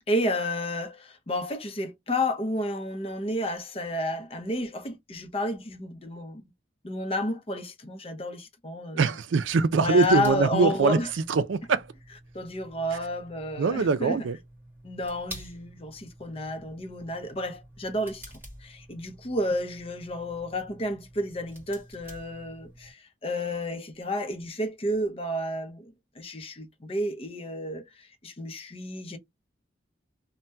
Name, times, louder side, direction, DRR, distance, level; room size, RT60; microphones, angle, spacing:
voice 1, 0.1-6.4 6.8-9.1 9.8-11.1 12.3-14.2 14.8-18.2 18.6-29.2, left 1 dB, 30° left, 0.6 m, -31 dB
voice 2, 9.0-11.0 11.3-11.9 13.6-14.4, right 4 dB, 85° right, 0.4 m, -23 dB
sound 1, 9.4-22.9, right 1 dB, 10° right, 1.5 m, -49 dB
2.7 x 2.2 x 3.3 m
head